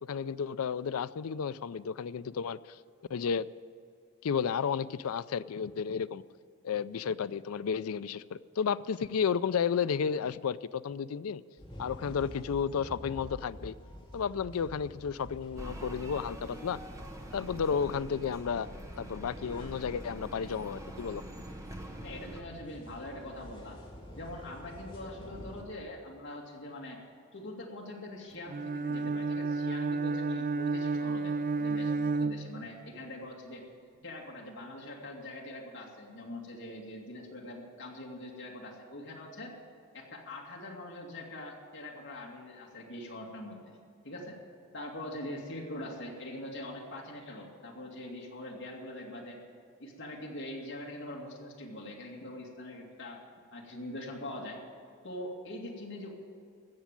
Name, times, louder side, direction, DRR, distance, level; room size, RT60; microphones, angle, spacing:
voice 1, 0.0-2.8 3.1-3.5 4.2-6.2 6.6-11.4 11.8-13.8 14.1-16.8 17.3-18.7 19.0-21.2, left 6 dB, 85° left, 16 dB, 0.4 m, -32 dB
sound 1, 11.6-25.6, equal, 25° left, 2.2 m, -48 dB
sound 2, 15.5-22.4, right 1 dB, 15° right, 1.3 m, -45 dB
voice 2, 22.0-23.8 24.1-27.0 27.3-33.6 34.0-39.5 39.9-43.8 44.0-44.4 44.7-49.4 49.8-53.2 53.5-54.6 55.0-56.2, left 1 dB, 60° left, -1 dB, 2.4 m, -43 dB
Bowed string instrument, 28.5-33.1, right 3 dB, 40° right, 0.4 m, -31 dB
15.5 x 7.2 x 9.0 m, 2.4 s
head